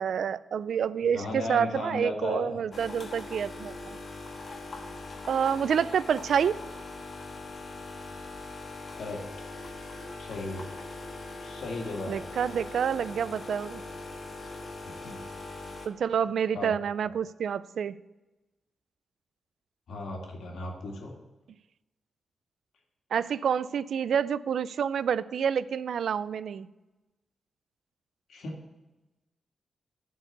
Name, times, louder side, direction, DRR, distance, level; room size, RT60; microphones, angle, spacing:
voice 1, 0.0-4.0 5.3-6.6 12.1-13.8 15.9-18.0 23.1-26.7, right 7 dB, 75° right, 17 dB, 0.3 m, -28 dB
voice 2, 1.1-2.6 9.0-9.2 10.2-10.7 11.4-12.2 14.9-15.2 16.5-16.7 17.0-17.1 19.9-21.1 28.3-28.5, left 2 dB, 85° left, 0 dB, 2.0 m, -35 dB
sound 1, 2.7-15.9, left 2 dB, 50° left, 1.3 m, -41 dB
10.5 x 4.7 x 6.7 m, 1.1 s
cardioid pair, 80°, 0 cm